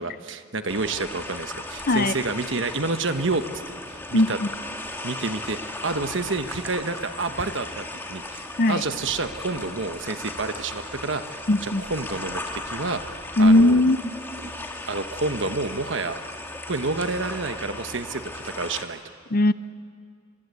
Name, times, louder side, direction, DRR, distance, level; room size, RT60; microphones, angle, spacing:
voice 1, 0.0-3.4 3.9-4.4 5.0-5.6 5.8-13.0 13.4-13.8 14.4-14.5 14.9-16.2 16.7-19.0, right 3 dB, 60° right, 9 dB, 1.2 m, -29 dB
sound 1, 0.7-18.8, left 2 dB, 10° left, 1.8 m, -36 dB
voice 2, 4.1-4.5 8.6-8.8 11.5-11.8 13.4-14.1 19.3-19.5, left 1 dB, 45° left, 14 dB, 0.6 m, -18 dB
28.5 x 23.0 x 8.3 m, 2.1 s
head